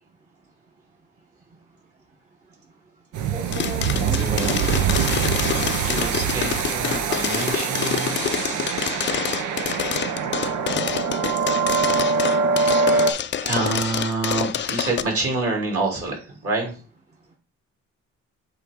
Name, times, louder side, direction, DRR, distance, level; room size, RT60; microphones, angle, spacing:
sound 1, 3.1-13.1, right 5 dB, 80° right, 0.8 m, -24 dB
voice 1, 3.3-4.8, right 2 dB, 25° right, 0 dB, 1.0 m, -35 dB
sound 2, 3.5-15.0, left 9 dB, 40° left, 0.4 m, -27 dB
voice 2, 3.8-4.7 5.8-8.2 12.7-16.8, right 3 dB, 50° right, 0 dB, 2.9 m, -27 dB
8.0 x 3.3 x 3.6 m, 0.36 s
cardioid pair, 90°, 30 cm